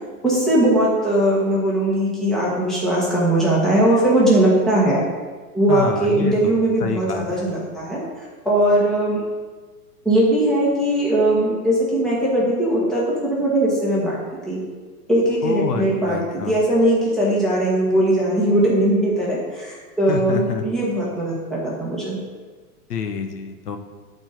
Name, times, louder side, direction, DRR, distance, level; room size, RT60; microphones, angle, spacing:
voice 1, 0.2-5.0 5.5-8.0 8.4-9.2 10.0-14.2 14.5-14.6 15.1-22.2, right 1 dB, ahead, -7 dB, 1.4 m, -19 dB
voice 2, 5.7-7.5 15.4-16.5 20.1-20.6 22.9-23.8, left 6 dB, 90° left, 6 dB, 1.2 m, -28 dB
12.0 x 4.4 x 5.1 m, 1.4 s
hypercardioid pair, 170°, 46 cm